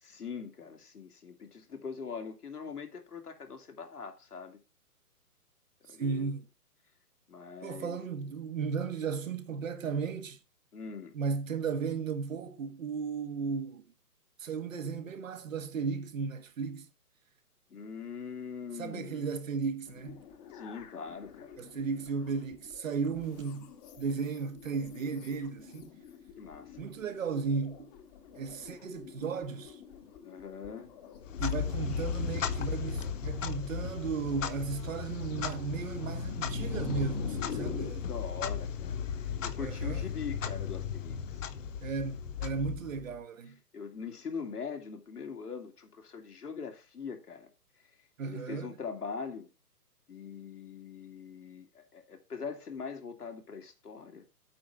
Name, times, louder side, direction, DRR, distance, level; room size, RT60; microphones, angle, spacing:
voice 1, 0.0-4.6 5.9-6.3 7.3-8.0 10.7-11.1 17.7-19.3 20.5-21.6 26.4-26.8 30.2-30.9 38.0-41.4 43.7-47.5 48.2-49.5 50.1-54.2, left 6 dB, 75° left, 2.6 m, -42 dB
voice 2, 5.9-6.5 7.6-10.4 11.1-13.9 14.4-16.9 18.7-20.2 21.6-23.7 24.0-26.0 26.8-27.9 28.3-29.8 31.4-38.1 39.6-40.1 41.8-43.6 48.2-48.7, right 5 dB, 55° right, 1.6 m, -35 dB
sound 1, 19.9-37.9, left 6 dB, 25° left, 1.4 m, -46 dB
Clock, 31.2-43.2, left 6 dB, 55° left, 1.2 m, -35 dB
8.6 x 4.6 x 7.4 m
figure-of-eight pair, 135°, 46 cm